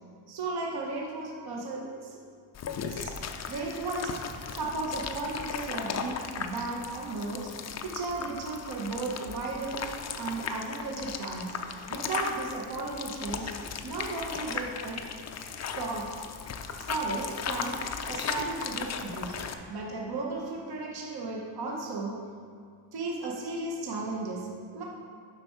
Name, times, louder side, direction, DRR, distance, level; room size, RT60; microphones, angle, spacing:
voice 1, 0.3-2.2 2.9-3.1 3.5-4.1 4.5-7.5 7.8-9.8 10.1-11.5 11.9-13.5 13.8-15.0 15.7-16.1 16.8-17.8 18.1-19.4 19.7-22.2 22.9-24.8, right 3 dB, 50° right, -1 dB, 0.9 m, -35 dB
sound 1, 2.5-19.5, left 6 dB, 35° left, 0.4 m, -37 dB
7.7 x 5.7 x 4.4 m, 2.2 s
cardioid pair, 145°, 50 cm